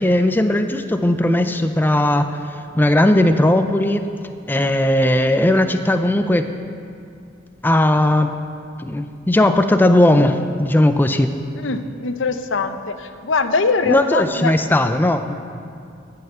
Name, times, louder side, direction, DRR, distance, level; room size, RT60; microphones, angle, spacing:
voice 1, 0.0-2.3 2.7-4.0 4.5-6.4 7.6-8.3 8.8-11.3 13.9-15.3, left 1 dB, 10° left, 8 dB, 0.4 m, -17 dB
voice 2, 11.5-14.5, left 4 dB, 80° left, 9 dB, 0.7 m, -22 dB
14.5 x 5.6 x 7.9 m, 2.5 s
head